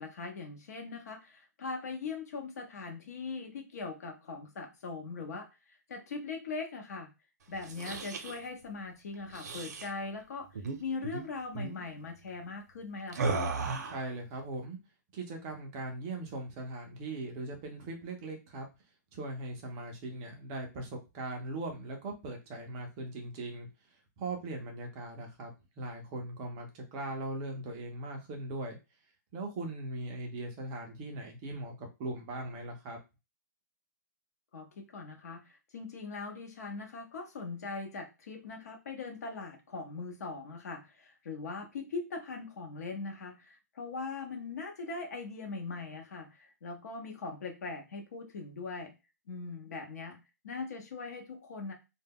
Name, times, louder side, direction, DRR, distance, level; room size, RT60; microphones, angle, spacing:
voice 1, 0.0-7.1 7.5-10.5 10.8-13.4 34.5-48.9 49.3-51.7, left 4 dB, 60° left, 3 dB, 0.7 m, -41 dB
sound 1, 7.5-8.4 9.3-9.9 10.5-10.8 11.0-11.2 11.5-11.8 13.1-14.1, right 4 dB, 65° right, 0.6 m, -35 dB
voice 2, 13.8-14.8 15.1-18.7 19.1-23.7 24.2-25.5 25.8-28.8 29.3-33.0, right 2 dB, 20° right, 2 dB, 0.3 m, -39 dB
2.1 x 2.1 x 3.4 m, 0.26 s
hypercardioid pair, 170°, 10 cm